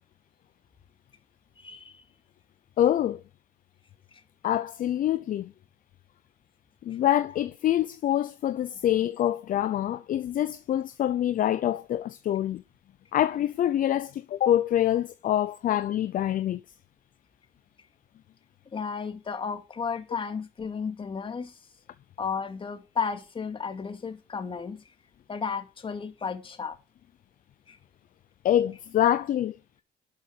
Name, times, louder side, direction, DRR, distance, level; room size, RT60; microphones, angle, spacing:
voice 1, 1.6-2.0 18.7-21.6 22.2-24.8 25.3-26.8 27.7-27.8, left 6 dB, 30° left, 2.4 m, -33 dB
voice 2, 2.8-3.2 4.4-5.5 6.8-12.6 13.1-16.6 28.4-29.6, left 11 dB, 55° left, 0.7 m, -25 dB
12.0 x 7.3 x 6.5 m
cardioid pair, 110°, 17 cm